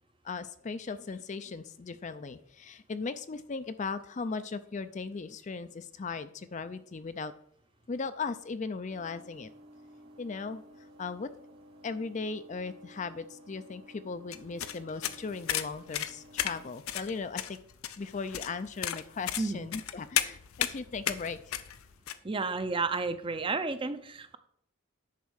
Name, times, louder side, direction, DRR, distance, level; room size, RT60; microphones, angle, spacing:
voice 1, 0.2-7.3 7.9-9.5 10.2-10.6 11.0-11.3 11.8-17.6 18.0-21.6, left 4 dB, 35° left, 12 dB, 0.4 m, -37 dB
sound 1, 8.9-16.7, equal, 85° right, 2.0 m, -54 dB
sound 2, 14.3-22.2, left 11 dB, 80° left, 0.6 m, -34 dB
voice 2, 19.4-19.7 22.2-24.4, right 3 dB, 25° right, 10 dB, 0.5 m, -32 dB
10.5 x 4.2 x 6.4 m, 0.68 s
head